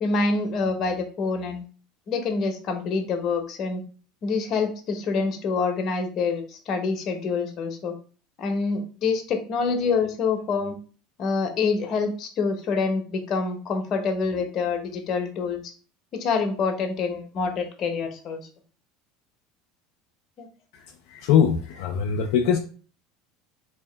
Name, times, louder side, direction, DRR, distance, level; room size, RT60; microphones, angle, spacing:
voice 1, 0.0-1.7 2.1-3.8 4.2-7.9 8.4-10.7 11.2-15.6 16.1-18.4 20.4-20.5, left 4 dB, 50° left, 5 dB, 0.9 m, -26 dB
voice 2, 21.1-22.6, left 8 dB, 70° left, 1 dB, 0.4 m, -21 dB
3.4 x 2.8 x 3.3 m, 0.39 s
supercardioid pair, 95°, 0 cm